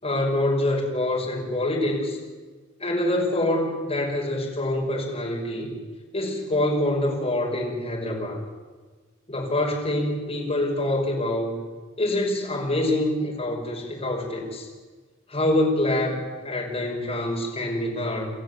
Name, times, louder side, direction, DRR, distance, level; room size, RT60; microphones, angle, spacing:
voice 1, 0.0-2.2 2.8-5.7 6.1-8.4 9.3-11.6 12.0-14.7 15.3-16.2 16.4-18.3, left 1 dB, 30° left, -1 dB, 5.3 m, -25 dB
28.5 x 14.0 x 8.0 m, 1.4 s
head